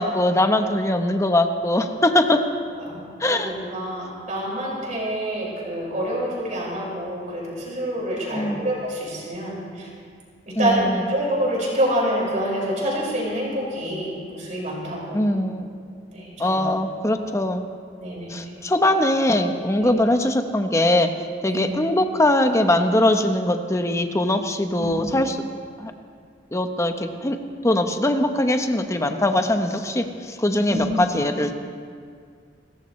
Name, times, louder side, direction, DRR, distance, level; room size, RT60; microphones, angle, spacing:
voice 1, 0.0-2.4 3.2-3.5 8.3-8.7 10.6-11.0 15.1-15.7 16.4-17.7 18.3-21.1 21.4-25.4 25.8-25.9 26.5-27.4 27.6-31.5, left 1 dB, 15° left, 6 dB, 0.9 m, -21 dB
voice 2, 2.8-9.9 10.5-15.3 16.1-16.6 18.0-18.6 19.8-19.9 21.4-21.7 24.8-25.0 30.7-30.9, right 1 dB, 45° right, -4 dB, 5.6 m, -27 dB
30.0 x 14.0 x 3.2 m, 2.1 s
head